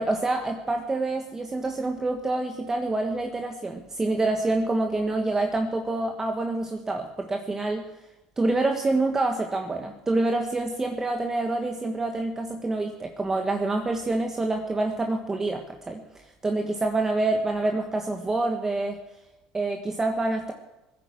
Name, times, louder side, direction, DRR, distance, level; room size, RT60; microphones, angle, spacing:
voice 1, 0.0-7.8 8.4-16.0 16.4-19.0 19.5-20.5, right 2 dB, 20° right, 3 dB, 1.5 m, -27 dB
17.5 x 10.5 x 7.6 m, 0.98 s
supercardioid pair, 85°, 2 cm